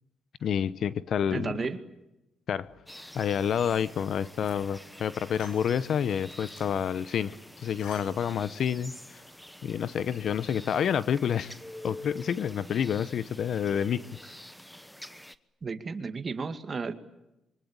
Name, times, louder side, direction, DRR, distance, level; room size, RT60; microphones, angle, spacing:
voice 1, 0.4-1.6 2.5-2.7 3.1-9.2 9.6-11.5 11.8-14.1, left 8 dB, 60° left, 0.9 m, -29 dB
voice 2, 1.3-1.8 15.6-16.9, right 4 dB, 35° right, 2.1 m, -33 dB
sound 1, 2.9-15.4, left 1 dB, 5° left, 1.1 m, -47 dB
sound 2, 4.4-4.9 5.3-6.8 7.5-8.7, left 5 dB, 85° left, 4.6 m, -50 dB
26.5 x 24.0 x 8.8 m
cardioid pair, 90°, 0 cm